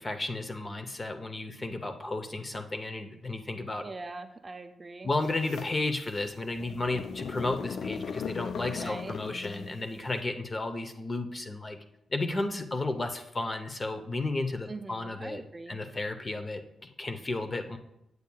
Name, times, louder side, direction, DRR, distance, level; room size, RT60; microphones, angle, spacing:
voice 1, 0.0-3.8 5.0-11.8 12.1-15.4 15.7-17.8, left 2 dB, 30° left, 6 dB, 0.7 m, -33 dB
voice 2, 3.8-5.1 8.8-9.1 14.7-15.8, right 3 dB, 30° right, 7 dB, 0.4 m, -42 dB
sound 1, 5.2-9.9, left 6 dB, 75° left, 0.3 m, -39 dB
8.1 x 6.9 x 2.3 m, 0.81 s
cardioid pair, 75°, 0 cm